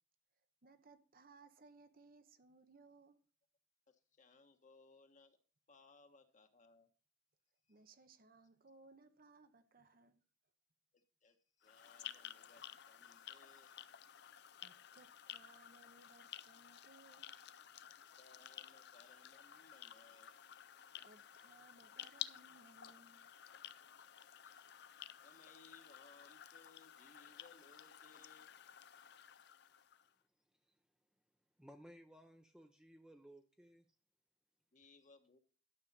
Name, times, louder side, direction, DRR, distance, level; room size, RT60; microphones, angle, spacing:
voice 1, 0.6-3.2 7.7-10.2 14.6-17.3 21.0-23.3, right 3 dB, 55° right, 0.9 m, -64 dB
voice 2, 3.9-5.4 5.7-6.9 7.7-7.8 10.9-14.3 18.0-21.2 24.1-28.6 34.7-35.4, left 3 dB, 45° left, 1.2 m, -66 dB
sound 1, 11.6-30.1, left 11 dB, 65° left, 0.5 m, -53 dB
voice 3, 31.6-33.9, equal, 5° right, 0.6 m, -59 dB
12.0 x 6.3 x 5.4 m
head